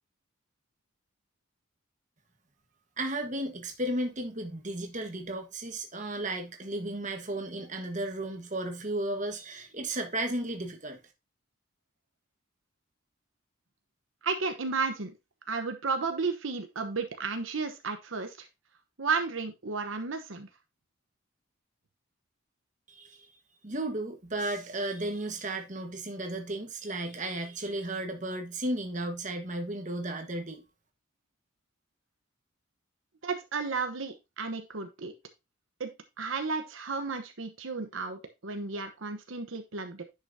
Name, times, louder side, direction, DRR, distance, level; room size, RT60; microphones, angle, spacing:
voice 1, 3.0-11.0 22.9-23.3 23.6-30.6, right 1 dB, 35° right, 1.4 m, -34 dB
voice 2, 14.2-15.1 15.5-18.5 19.0-20.5 33.2-35.1 35.8-35.9 36.2-40.0, right 4 dB, 75° right, 1.0 m, -33 dB
10.0 x 6.0 x 2.7 m
head